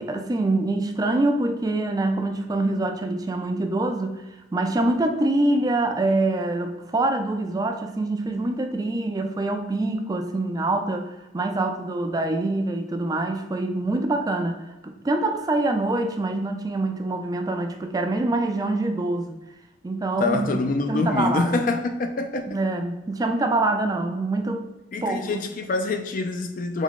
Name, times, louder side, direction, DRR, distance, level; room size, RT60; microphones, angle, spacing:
voice 1, 0.0-4.2 4.5-14.6 14.8-19.3 19.8-20.6 20.9-21.5 22.5-24.6 25.0-25.4, right 2 dB, 20° right, 0.3 m, -25 dB
voice 2, 20.2-22.6 24.9-26.8, left 3 dB, 45° left, 0.4 m, -25 dB
3.6 x 3.6 x 3.6 m
head